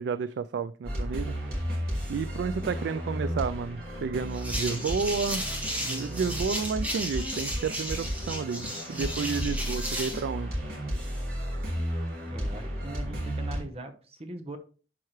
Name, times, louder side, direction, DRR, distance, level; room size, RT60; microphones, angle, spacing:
voice 1, 0.0-1.4 2.1-5.5 5.8-10.6, right 5 dB, 85° right, 13 dB, 0.3 m, -31 dB
sound 1, 0.8-13.6, equal, 55° right, 3.1 m, -33 dB
sound 2, 4.3-10.2, equal, 10° right, 1.6 m, -34 dB
voice 2, 12.2-14.6, right 1 dB, 35° right, 6 dB, 1.0 m, -41 dB
11.0 x 4.6 x 3.1 m, 0.37 s
head